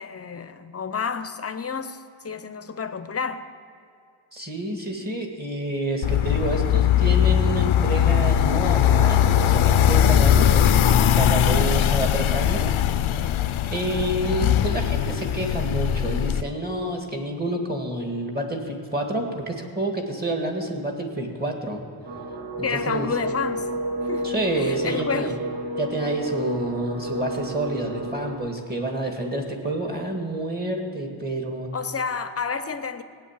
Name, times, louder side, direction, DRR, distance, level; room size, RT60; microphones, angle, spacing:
voice 1, 0.0-3.4 14.2-14.3 22.6-23.7 24.0-25.3 31.7-33.0, left 6 dB, 30° left, 11 dB, 0.7 m, -30 dB
voice 2, 4.3-12.7 13.6-21.9 22.6-23.1 24.2-25.4 25.8-31.7, right 1 dB, 20° right, 2 dB, 1.9 m, -28 dB
sound 1, 6.0-16.4, left 10 dB, 90° left, 0.7 m, -20 dB
sound 2, 22.0-28.4, right 1 dB, 70° right, 2.0 m, -31 dB
17.0 x 9.2 x 7.3 m, 2.4 s
wide cardioid pair, 140°, 48 cm